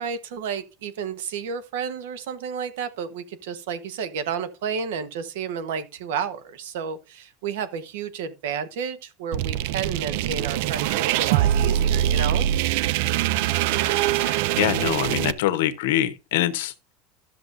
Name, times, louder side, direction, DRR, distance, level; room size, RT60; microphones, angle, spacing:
voice 1, 0.0-12.5, right 7 dB, 90° right, 1.1 m, -31 dB
sound 1, 9.3-15.3, right 12 dB, 70° right, 0.4 m, -23 dB
voice 2, 14.2-16.9, left 13 dB, 85° left, 0.9 m, -25 dB
13.0 x 6.9 x 2.6 m
supercardioid pair, 145°, 0 cm